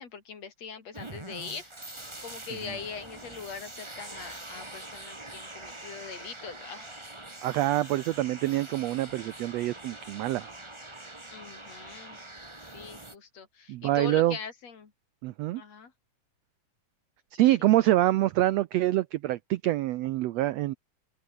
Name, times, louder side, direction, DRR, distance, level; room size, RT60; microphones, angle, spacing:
voice 1, 0.0-1.7 2.2-7.0 11.3-12.2 12.6-14.9 15.6-15.9 17.6-17.7, left 6 dB, 55° left, 4.1 m, -42 dB
sound 1, 0.9-13.1, right 2 dB, 10° right, 1.8 m, -44 dB
voice 2, 7.4-10.5 13.7-14.4 15.2-15.6 17.3-20.7, right 15 dB, 80° right, 1.5 m, -25 dB
omnidirectional pair, 3.7 m